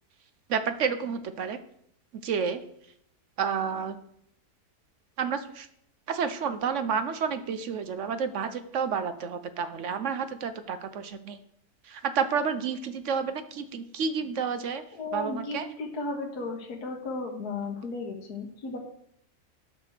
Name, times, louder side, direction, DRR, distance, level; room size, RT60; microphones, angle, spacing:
voice 1, 0.5-1.6 2.1-2.6 3.4-4.0 5.2-5.7 6.1-11.4 11.8-14.8 15.1-15.7, right 6 dB, 60° right, 10 dB, 0.9 m, -30 dB
voice 2, 14.9-18.8, left 3 dB, 70° left, 1 dB, 1.8 m, -35 dB
8.8 x 5.9 x 6.6 m, 0.72 s
omnidirectional pair, 1.7 m